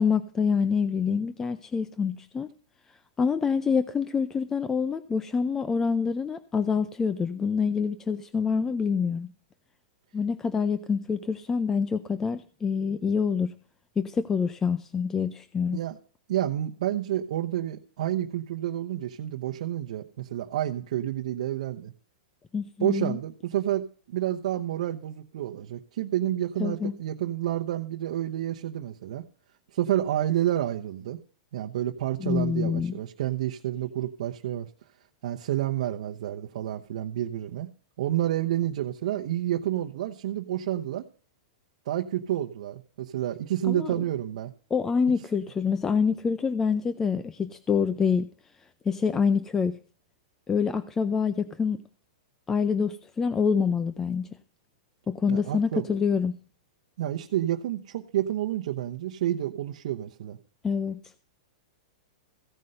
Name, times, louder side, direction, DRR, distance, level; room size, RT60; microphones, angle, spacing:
voice 1, 0.0-2.5 3.2-9.3 10.1-13.5 14.0-15.8 22.5-23.2 26.6-26.9 32.2-33.0 43.7-43.9 44.7-48.3 48.9-49.7 50.5-51.8 52.5-54.3 55.1-56.4 60.6-61.0, left 6 dB, 10° left, 12 dB, 0.5 m, -26 dB
voice 2, 16.3-21.9 22.8-29.2 29.7-31.2 31.5-34.7 35.2-37.7 38.0-41.0 41.9-44.5 55.3-55.9 57.0-60.4, right 12 dB, 60° right, 2 dB, 0.9 m, -29 dB
15.5 x 5.5 x 7.8 m, 0.43 s
supercardioid pair, 160°, 4 cm